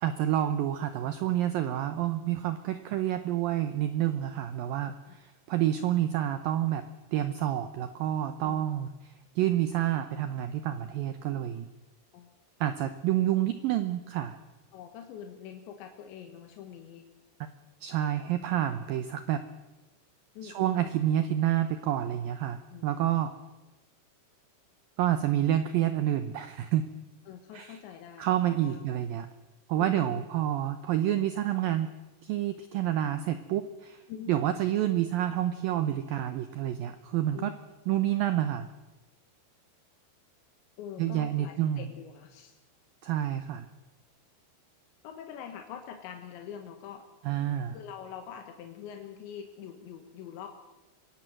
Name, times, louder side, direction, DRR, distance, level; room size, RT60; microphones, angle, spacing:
voice 1, 0.0-6.9 7.1-11.7 12.6-14.4 17.4-17.5 17.8-19.4 20.4-23.3 25.0-26.9 27.5-27.8 28.2-29.3 29.7-31.9 32.2-34.0 34.3-37.5 37.9-38.7 41.0-41.9 43.0-43.7 47.3-47.8, right 12 dB, 75° right, 10 dB, 2.1 m, -28 dB
voice 2, 14.7-17.1 20.4-20.7 22.7-23.0 27.3-28.8 29.8-30.6 34.1-34.3 37.3-37.5 40.8-42.6 45.0-47.0 47.7-50.5, left 8 dB, 85° left, 5 dB, 3.8 m, -44 dB
24.5 x 17.5 x 7.7 m, 1.1 s
omnidirectional pair, 5.1 m